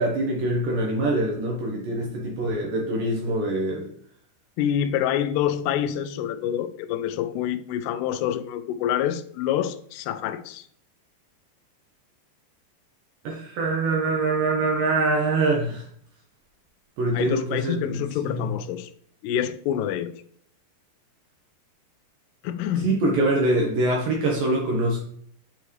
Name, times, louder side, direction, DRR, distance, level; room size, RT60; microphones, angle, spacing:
voice 1, 0.0-3.9 13.2-15.8 17.0-18.5 22.8-25.0, right 2 dB, 70° right, 2.2 m, -24 dB
voice 2, 4.6-10.7 17.1-18.9 19.2-20.2 22.4-23.0, left 10 dB, 80° left, 2.5 m, -27 dB
8.9 x 4.5 x 3.1 m
omnidirectional pair, 5.1 m